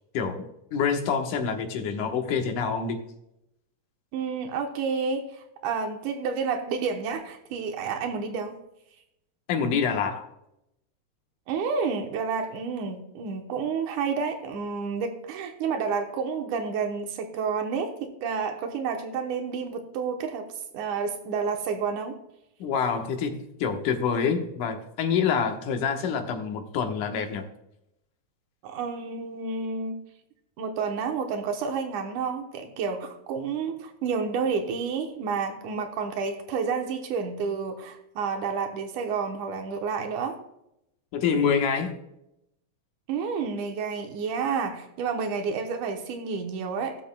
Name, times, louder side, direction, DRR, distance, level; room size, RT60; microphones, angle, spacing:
voice 1, 0.1-3.0 9.5-10.3 22.6-27.4 41.1-42.0, left 6 dB, 90° left, 4 dB, 2.7 m, -26 dB
voice 2, 4.1-8.6 11.5-20.5 20.7-22.1 28.6-30.0 30.6-40.4 43.1-47.0, right 5 dB, 85° right, 5 dB, 2.5 m, -30 dB
17.0 x 7.3 x 2.2 m, 0.82 s
omnidirectional pair, 3.5 m